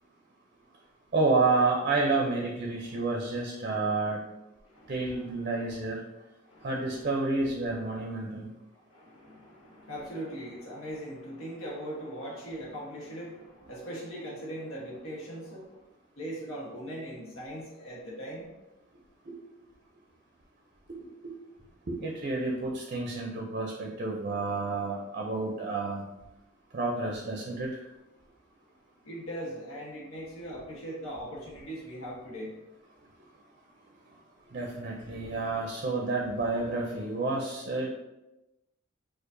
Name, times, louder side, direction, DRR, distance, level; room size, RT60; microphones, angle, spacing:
voice 1, 1.1-4.2 4.9-6.0 6.6-8.5 19.3-19.4 21.2-21.3 21.9-26.0 26.7-27.8 34.5-37.9, right 3 dB, 40° right, 0 dB, 0.5 m, -29 dB
voice 2, 4.6-5.8 6.4-7.4 8.9-15.8 16.1-18.5 21.8-21.9 26.9-27.2 29.0-32.6, equal, 85° left, -4 dB, 1.1 m, -41 dB
4.5 x 2.4 x 2.6 m, 0.98 s
head